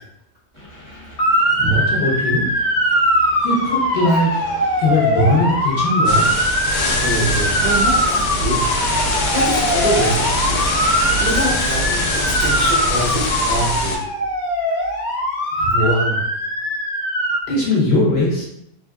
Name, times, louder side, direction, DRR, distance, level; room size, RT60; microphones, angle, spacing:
sound 1, 0.5-12.0, equal, 10° left, 0.6 m, -35 dB
Motor vehicle (road) / Siren, 1.2-17.4, equal, 70° left, 1.1 m, -21 dB
voice 1, 1.5-2.5 3.4-4.4 4.8-6.3 15.6-16.2 17.5-18.5, left 1 dB, 50° left, -4 dB, 0.9 m, -19 dB
sound 2, 6.1-14.0, left 1 dB, 90° left, 1.2 m, -23 dB
voice 2, 6.7-8.6 9.3-10.7 11.2-14.0, right 1 dB, 60° right, -7 dB, 0.4 m, -25 dB
3.3 x 2.4 x 2.3 m, 0.78 s
omnidirectional pair, 1.7 m